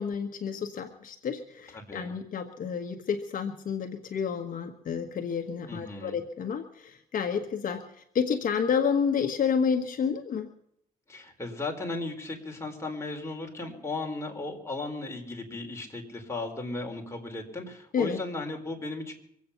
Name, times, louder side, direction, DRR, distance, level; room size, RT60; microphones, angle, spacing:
voice 1, 0.0-10.5 17.9-18.2, left 6 dB, 60° left, 6 dB, 1.3 m, -30 dB
voice 2, 1.7-2.1 5.7-6.1 11.1-19.1, left 2 dB, 15° left, 1 dB, 4.2 m, -36 dB
24.5 x 8.6 x 5.8 m, 0.73 s
cardioid pair, 95°, 16 cm